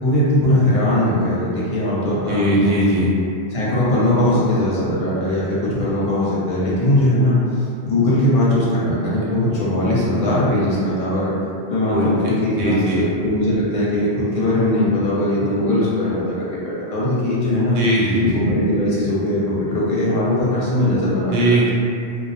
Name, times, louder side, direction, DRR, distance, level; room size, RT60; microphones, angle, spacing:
voice 1, 0.0-2.8 3.5-7.4 7.8-11.3 11.7-17.8 18.2-21.3, left 1 dB, 45° left, -8 dB, 0.7 m, -20 dB
voice 2, 2.3-3.1 11.9-12.3 12.6-13.1 17.7-18.4 21.3-21.7, right 1 dB, 75° right, -6 dB, 0.8 m, -20 dB
2.3 x 2.1 x 2.7 m, 2.5 s
omnidirectional pair, 1.1 m